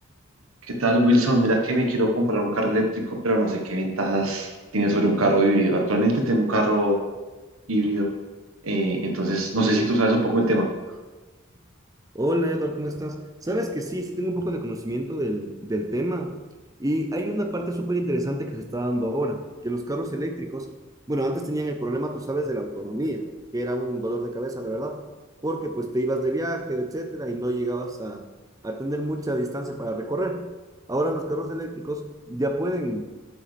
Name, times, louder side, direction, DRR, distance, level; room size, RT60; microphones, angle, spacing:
voice 1, 0.7-7.0 7.7-8.1 8.6-10.7, right 1 dB, 85° right, 2 dB, 1.3 m, -22 dB
voice 2, 12.1-16.3 16.8-20.7 21.1-23.3 23.5-25.1 25.4-28.3 28.6-30.5 30.9-33.1, right 1 dB, 15° right, 5 dB, 0.7 m, -28 dB
11.5 x 6.4 x 3.4 m, 1.2 s
head